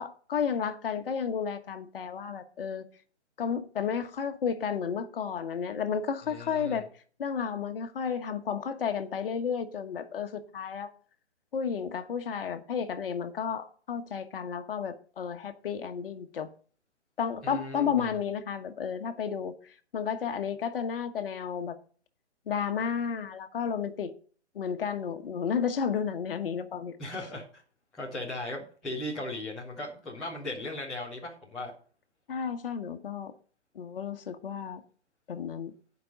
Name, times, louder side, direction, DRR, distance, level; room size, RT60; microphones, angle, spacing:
voice 1, 0.0-2.8 3.4-6.9 7.2-10.9 11.5-16.5 17.2-19.5 19.9-21.8 22.5-24.1 24.5-26.9 32.3-33.3 33.7-34.8 35.3-35.7, left 7 dB, 55° left, 1.3 m, -32 dB
voice 2, 6.2-6.8 17.4-18.1 27.0-27.6 27.9-31.7, left 1 dB, ahead, 0.3 m, -37 dB
10.0 x 5.3 x 6.6 m
figure-of-eight pair, 135°, 34 cm